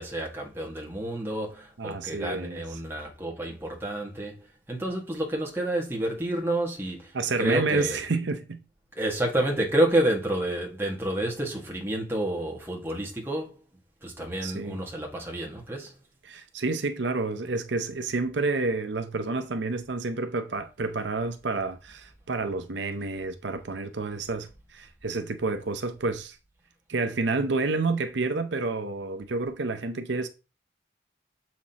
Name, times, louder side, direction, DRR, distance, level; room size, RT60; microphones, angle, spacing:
voice 1, 0.0-4.4 4.7-7.1 7.4-8.0 9.0-13.6 14.0-15.9, right 1 dB, 10° right, 1.7 m, -29 dB
voice 2, 1.8-2.6 7.1-8.6 14.4-14.8 16.2-26.4 26.9-30.3, right 3 dB, 75° right, 0.7 m, -29 dB
7.3 x 6.0 x 2.9 m
head